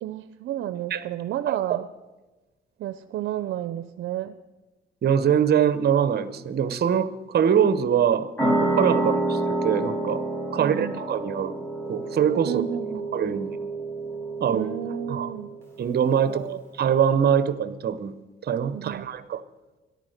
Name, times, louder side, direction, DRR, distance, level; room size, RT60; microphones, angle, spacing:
voice 1, 0.0-1.9 2.8-4.4 9.0-9.3 10.6-11.0 12.4-13.0 14.5-15.5 16.3-16.6 18.7-19.1, right 12 dB, 75° right, 11 dB, 0.6 m, -31 dB
voice 2, 5.0-10.2 10.5-11.5 11.9-13.6 14.4-14.7 15.1-15.3 15.8-16.4 16.8-18.1 18.4-19.4, right 8 dB, 55° right, 13 dB, 1.0 m, -23 dB
sound 1, 8.4-15.6, right 2 dB, 10° left, 5.3 m, -28 dB
13.5 x 11.0 x 6.6 m, 1.2 s
cardioid pair, 90°, 20 cm